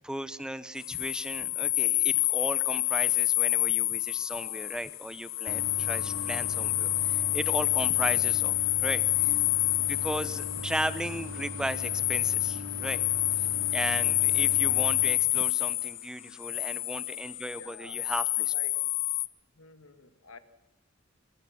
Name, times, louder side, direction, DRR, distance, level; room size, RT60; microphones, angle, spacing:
voice 1, 0.0-9.4 9.7-13.0 13.7-18.5, right 1 dB, 5° right, 14 dB, 0.8 m, -36 dB
sound 1, 0.8-19.3, left 17 dB, 65° left, 0.8 m, -28 dB
Idling, 5.5-15.0, equal, 70° right, 2.7 m, -40 dB
voice 2, 14.3-14.7 17.6-18.1 18.5-18.8 19.6-20.4, left 3 dB, 90° left, 11 dB, 1.9 m, -50 dB
24.0 x 21.0 x 5.9 m, 0.97 s
head